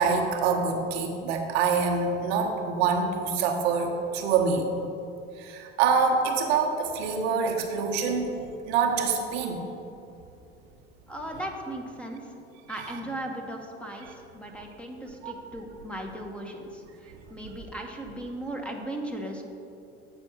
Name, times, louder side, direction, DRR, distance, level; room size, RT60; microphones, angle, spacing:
voice 1, 0.0-4.7 5.4-8.4 8.7-9.6 15.2-15.3, right 5 dB, 80° right, 2 dB, 1.0 m, -25 dB
voice 2, 11.1-12.3 12.7-19.4, right 1 dB, 5° left, 1 dB, 1.0 m, -37 dB
8.1 x 4.4 x 5.9 m, 2.7 s
hypercardioid pair, 85°, 31 cm